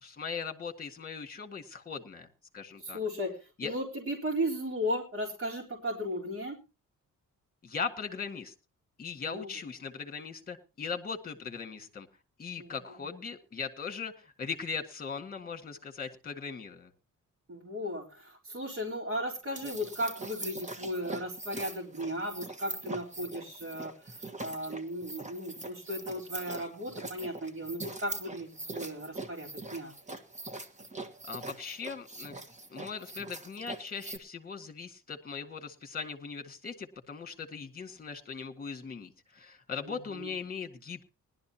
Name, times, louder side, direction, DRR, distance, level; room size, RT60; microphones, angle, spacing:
voice 1, 0.0-2.3 2.5-3.0 3.6-3.7 7.6-8.5 9.0-12.1 12.4-16.9 31.3-32.4 32.7-41.0, left 5 dB, 30° left, 6 dB, 1.8 m, -39 dB
voice 2, 2.8-6.6 9.3-9.6 12.6-12.8 17.5-23.9 24.4-29.9 39.9-40.3, equal, 45° right, -1 dB, 3.8 m, -36 dB
sound 1, 19.4-34.2, right 2 dB, 20° right, 1.4 m, -42 dB
20.0 x 12.0 x 2.9 m, 0.29 s
wide cardioid pair, 150°, 32 cm